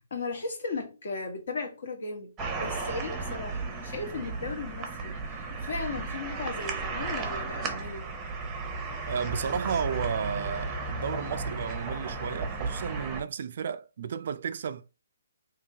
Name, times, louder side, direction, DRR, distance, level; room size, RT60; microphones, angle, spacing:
voice 1, 0.0-8.1, left 3 dB, 60° left, 1.3 m, -36 dB
sound 1, 2.4-13.2, right 3 dB, 10° right, 0.7 m, -34 dB
voice 2, 9.1-14.8, right 7 dB, 50° right, 0.3 m, -33 dB
3.7 x 2.9 x 2.8 m
hypercardioid pair, 160°, 0 cm